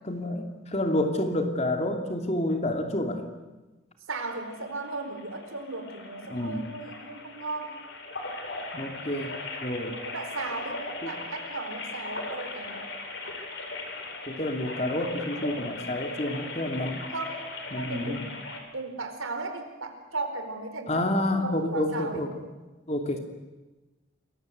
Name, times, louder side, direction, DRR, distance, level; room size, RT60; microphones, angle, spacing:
voice 1, 0.0-3.2 6.2-6.6 8.7-9.4 9.6-10.0 11.0-11.1 14.3-17.1 17.7-18.2 20.9-22.4 22.9-23.2, left 1 dB, 30° left, 5 dB, 2.8 m, -29 dB
sound 1, 4.1-18.6, left 3 dB, 60° left, 4.8 m, -39 dB
voice 2, 4.1-7.8 10.0-12.8 17.1-17.4 17.8-18.3 18.7-22.3, right 3 dB, 85° right, 6 dB, 4.5 m, -36 dB
28.0 x 22.5 x 8.1 m, 1.1 s
head